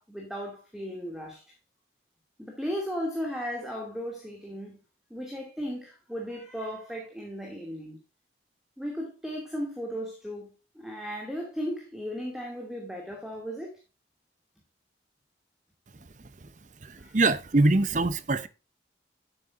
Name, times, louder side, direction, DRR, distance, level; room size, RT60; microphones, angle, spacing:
voice 1, 0.0-1.4 2.4-4.8 5.1-8.0 8.8-10.5 10.7-13.8 17.0-17.2, equal, ahead, 2.5 m, -36 dB
voice 2, 16.8-18.5, right 2 dB, 40° right, 0.7 m, -24 dB
11.5 x 8.8 x 2.6 m
head